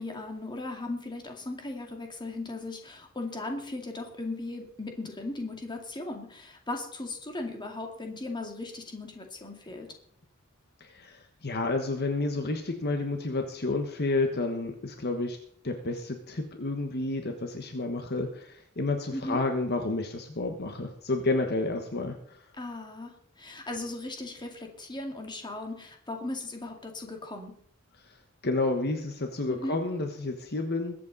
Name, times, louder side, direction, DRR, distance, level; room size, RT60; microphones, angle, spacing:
voice 1, 0.0-9.9 19.1-19.4 22.6-23.1 23.4-27.5 29.5-29.8, left 2 dB, 20° left, 3 dB, 2.2 m, -37 dB
voice 2, 10.8-15.4 15.6-22.4 28.4-30.9, left 2 dB, 50° left, 4 dB, 1.3 m, -30 dB
22.0 x 8.4 x 4.1 m, 0.62 s
head